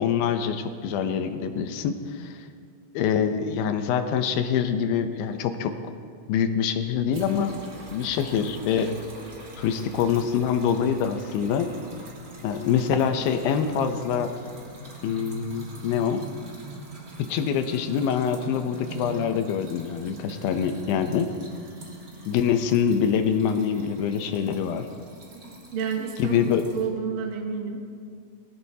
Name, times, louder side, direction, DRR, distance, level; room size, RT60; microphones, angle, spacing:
voice 1, 0.0-2.4 2.9-5.7 6.3-7.6 7.9-8.9 9.6-11.7 12.4-14.3 15.0-16.2 17.2-21.3 22.3-24.9 26.2-26.6, left 7 dB, 80° left, 8 dB, 2.4 m, -25 dB
sound 1, 7.1-26.9, right 2 dB, 45° right, 1.1 m, -43 dB
voice 2, 25.7-27.8, right 6 dB, 65° right, 2 dB, 1.3 m, -30 dB
20.5 x 15.5 x 2.8 m, 2.2 s
omnidirectional pair, 4.3 m